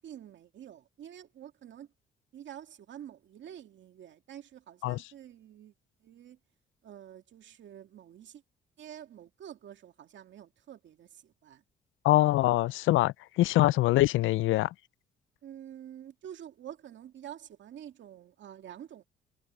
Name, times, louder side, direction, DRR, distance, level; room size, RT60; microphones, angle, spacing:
voice 1, 0.0-1.9 2.3-5.7 6.0-6.4 6.8-8.4 8.8-11.6 12.1-12.3 15.4-19.0, right 10 dB, 70° right, 2.3 m, -48 dB
voice 2, 12.0-14.7, left 17 dB, 80° left, 0.4 m, -24 dB
cardioid pair, 90°, 20 cm